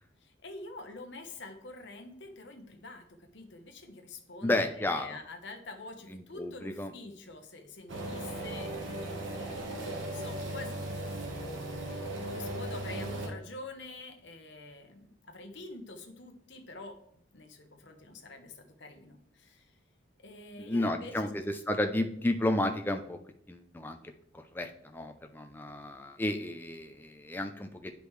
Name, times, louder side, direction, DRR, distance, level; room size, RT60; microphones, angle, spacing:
voice 1, 0.2-8.7 9.9-10.8 11.1-17.0 17.3-19.7 20.2-21.3, left 2 dB, 60° left, 5 dB, 1.1 m, -46 dB
voice 2, 4.4-5.2 6.1-6.9 20.6-23.2 23.5-24.0 24.3-27.9, left 1 dB, 10° left, 5 dB, 0.5 m, -32 dB
sound 1, 7.9-13.3, right 1 dB, 70° right, 1.4 m, -37 dB
9.8 x 5.1 x 3.3 m, 0.69 s
head